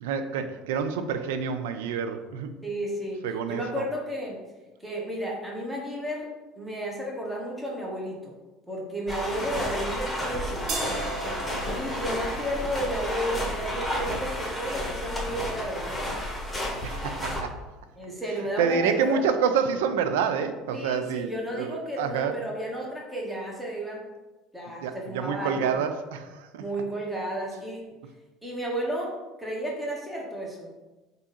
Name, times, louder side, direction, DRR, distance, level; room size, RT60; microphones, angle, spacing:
voice 1, 0.0-2.5 3.2-3.8 16.8-17.6 18.6-22.4 24.8-26.6, right 6 dB, 80° right, 9 dB, 0.4 m, -28 dB
voice 2, 2.6-4.4 4.8-6.3 6.6-8.3 8.7-10.7 11.7-16.0 18.0-19.2 20.7-24.1 24.5-25.7 26.6-27.8 28.4-30.7, equal, 10° right, -2 dB, 1.3 m, -32 dB
sound 1, 9.1-17.4, left 1 dB, 10° left, 1.4 m, -31 dB
sound 2, 10.7-16.6, right 3 dB, 60° right, 0.8 m, -39 dB
3.5 x 2.7 x 4.1 m, 1.1 s
hypercardioid pair, 75°, 0 cm